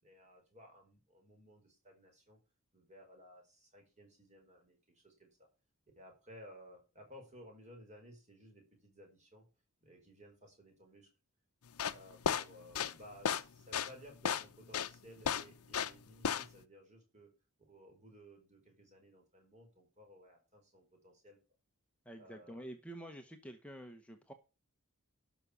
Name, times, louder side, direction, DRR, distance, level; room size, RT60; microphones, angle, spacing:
voice 1, 0.0-2.4 2.7-5.5 5.9-9.4 9.8-11.1 11.9-17.3 17.7-21.4 22.2-22.7, equal, 30° right, 2 dB, 4.7 m, -58 dB
sound 1, 11.7-16.6, left 7 dB, 80° left, 0.8 m, -34 dB
voice 2, 22.0-24.3, right 1 dB, 5° left, 5 dB, 1.0 m, -48 dB
12.0 x 6.2 x 6.8 m, 0.31 s
head